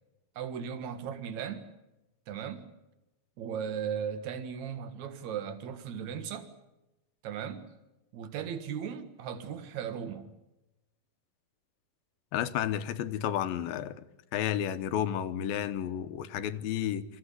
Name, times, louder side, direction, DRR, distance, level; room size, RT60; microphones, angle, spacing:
voice 1, 0.4-1.7 2.3-2.7 3.4-6.5 7.2-7.7 8.1-10.3, right 8 dB, 60° right, 2.6 m, -37 dB
voice 2, 12.3-14.0 14.3-17.0, left 10 dB, 80° left, 2.8 m, -31 dB
26.0 x 15.0 x 9.8 m
omnidirectional pair, 4.2 m